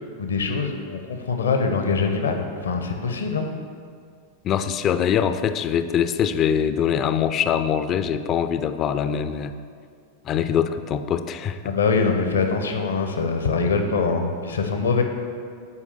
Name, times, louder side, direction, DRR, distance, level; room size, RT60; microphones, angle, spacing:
voice 1, 0.2-3.5 11.6-15.0, left 4 dB, 70° left, 5 dB, 0.8 m, -23 dB
voice 2, 4.4-9.5 10.2-11.6, left 8 dB, 30° left, 11 dB, 0.4 m, -23 dB
8.3 x 4.9 x 6.7 m, 2.2 s
figure-of-eight pair, 90°, 0 cm